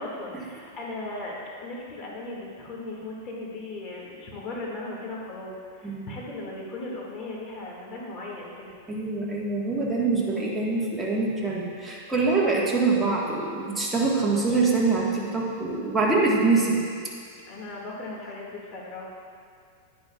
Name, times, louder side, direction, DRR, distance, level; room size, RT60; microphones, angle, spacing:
voice 1, 0.0-8.7 17.5-19.0, left 2 dB, 35° left, -3 dB, 2.1 m, -37 dB
voice 2, 5.8-6.2 8.9-16.8, right 3 dB, 10° right, -5 dB, 1.5 m, -24 dB
11.0 x 10.5 x 2.4 m, 2.2 s
hypercardioid pair, 135°, 0 cm